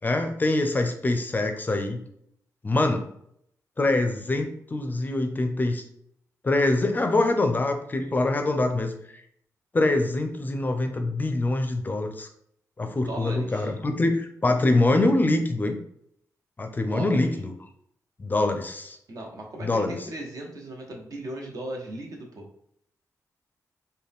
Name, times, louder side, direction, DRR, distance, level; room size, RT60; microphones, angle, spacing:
voice 1, 0.0-2.0 2.6-3.0 3.8-5.8 6.4-9.2 9.7-12.3 12.8-15.8 16.6-17.5 18.2-19.0 19.6-20.0, left 2 dB, 25° left, 6 dB, 0.5 m, -24 dB
voice 2, 13.1-13.7 16.9-17.3 19.1-22.4, right 1 dB, 60° right, 1 dB, 0.9 m, -37 dB
3.8 x 2.2 x 3.6 m, 0.69 s
cardioid pair, 95°, 7 cm